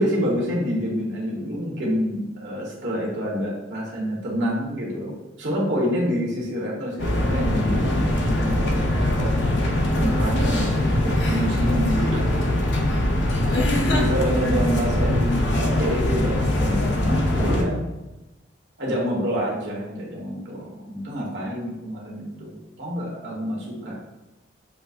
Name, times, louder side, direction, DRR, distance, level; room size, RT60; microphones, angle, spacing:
voice 1, 0.0-9.3 9.9-10.8 11.0-12.6 13.9-17.8 18.8-23.9, equal, 65° right, -4 dB, 1.3 m, -27 dB
sound 1, 7.0-17.6, left 1 dB, 65° left, 0.6 m, -22 dB
7.1 x 2.6 x 2.5 m, 1.0 s
head